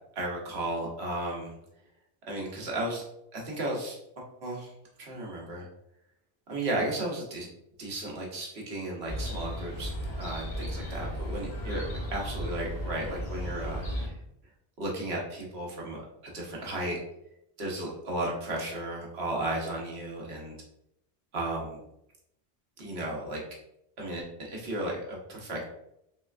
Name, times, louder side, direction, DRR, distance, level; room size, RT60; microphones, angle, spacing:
voice 1, 0.1-1.5 2.3-3.0 3.3-4.7 5.0-5.7 6.5-7.5 7.8-11.8 12.1-14.2 14.8-17.0 17.6-20.5 21.3-21.8 22.8-23.4 24.0-25.6, right 1 dB, 80° right, -2 dB, 1.3 m, -34 dB
Chirp tweet, 9.1-14.1, equal, 85° left, 1.6 m, -35 dB
4.1 x 3.2 x 2.4 m, 0.78 s
omnidirectional pair, 1.1 m